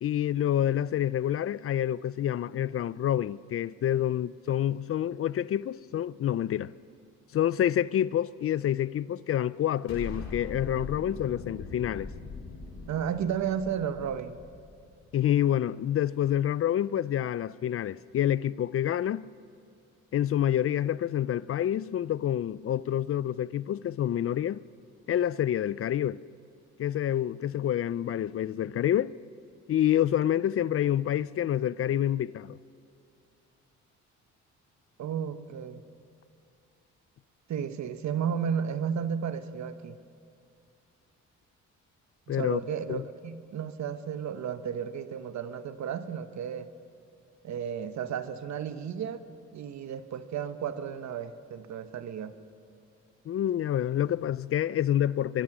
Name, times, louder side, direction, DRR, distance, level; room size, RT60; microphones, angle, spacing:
voice 1, 0.0-6.7 7.3-12.1 15.1-19.3 20.1-24.6 25.1-26.2 26.8-29.1 29.7-32.6 42.3-42.6 42.9-43.0 53.3-55.4, left 11 dB, 50° left, 0.5 m, -27 dB
Explosion, 9.9-15.1, left 3 dB, 65° left, 6.4 m, -41 dB
voice 2, 12.9-14.4 35.0-35.8 37.5-40.0 42.3-46.7 47.4-49.2 49.5-52.4, right 8 dB, 65° right, 1.2 m, -33 dB
23.5 x 22.0 x 6.1 m
cardioid pair, 90°, 30 cm